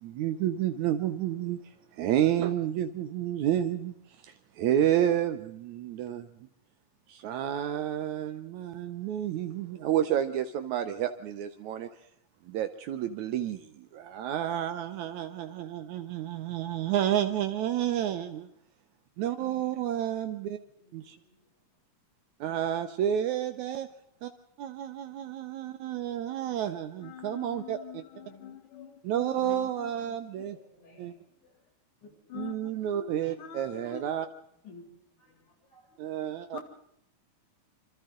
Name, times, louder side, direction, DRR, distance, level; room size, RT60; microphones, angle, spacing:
voice 1, 0.0-1.6 1.9-3.9 4.2-6.3 7.1-11.9 12.4-18.5 19.2-20.6 20.9-21.2 22.4-23.9 24.2-24.3 24.6-28.0 29.0-30.6 31.0-31.1 32.3-34.3 36.0-36.6, right 11 dB, 75° right, 9 dB, 2.2 m, -30 dB
voice 2, 19.9-20.3 20.8-21.5 23.1-23.3 23.8-23.9 24.5-24.6 24.8-25.0 28.1-28.9 29.5-31.7 32.0-32.3 34.2-34.6 35.0-36.2, left 3 dB, 60° left, -2 dB, 9.4 m, -61 dB
voice 3, 27.0-28.9 29.2-29.9 32.0-32.6 32.9-34.0 34.7-34.8 36.5-36.6, left 7 dB, 80° left, 4 dB, 4.2 m, -44 dB
26.0 x 26.0 x 3.8 m, 0.75 s
omnidirectional pair, 3.5 m